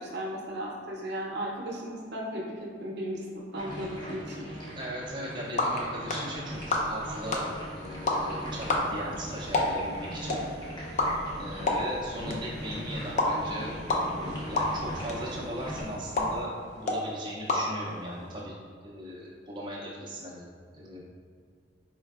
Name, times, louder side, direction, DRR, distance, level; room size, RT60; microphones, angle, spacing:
voice 1, 0.0-3.2 3.5-4.4 10.3-10.4, equal, 60° right, -2 dB, 0.7 m, -35 dB
sound 1, 3.5-15.8, equal, 25° left, 0.9 m, -41 dB
voice 2, 4.7-10.4 11.4-13.7 14.0-18.5 18.8-20.5 20.7-21.0, equal, 25° right, -6 dB, 0.5 m, -38 dB
sound 2, 5.1-18.4, left 2 dB, 40° left, 0.4 m, -32 dB
sound 3, 6.5-16.4, equal, 75° left, 1.0 m, -45 dB
4.4 x 3.2 x 2.3 m, 2.1 s
head